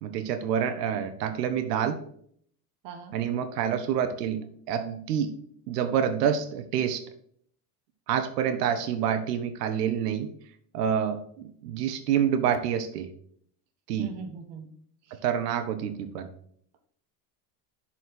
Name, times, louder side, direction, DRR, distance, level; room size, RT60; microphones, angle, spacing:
voice 1, 0.0-2.0 3.1-5.4 5.7-7.0 8.1-10.3 10.7-13.1 13.9-14.1 15.2-16.3, right 8 dB, 90° right, 9 dB, 0.9 m, -27 dB
voice 2, 2.8-3.2 14.0-14.7 15.1-15.2, right 4 dB, 60° right, 7 dB, 1.5 m, -40 dB
6.6 x 4.3 x 6.2 m, 0.63 s
supercardioid pair, 85°, 47 cm